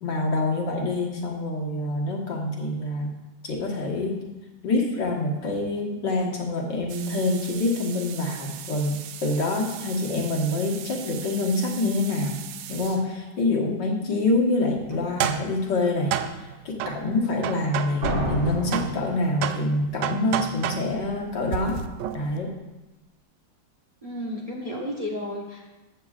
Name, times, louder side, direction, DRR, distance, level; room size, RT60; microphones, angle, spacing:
voice 1, 0.0-3.1 3.4-4.3 4.6-12.4 12.7-16.1 16.7-21.8 22.1-22.6, left 2 dB, 65° left, -1 dB, 2.0 m, -26 dB
sound 1, 6.9-13.0 14.9-18.4 18.7-22.4, right 10 dB, 75° right, 1.2 m, -33 dB
sound 2, 18.0-19.8, left 1 dB, 55° right, 3.0 m, -28 dB
voice 2, 24.0-25.7, left 1 dB, 20° right, -1 dB, 1.3 m, -32 dB
14.5 x 8.4 x 2.5 m, 1.0 s
omnidirectional pair, 2.1 m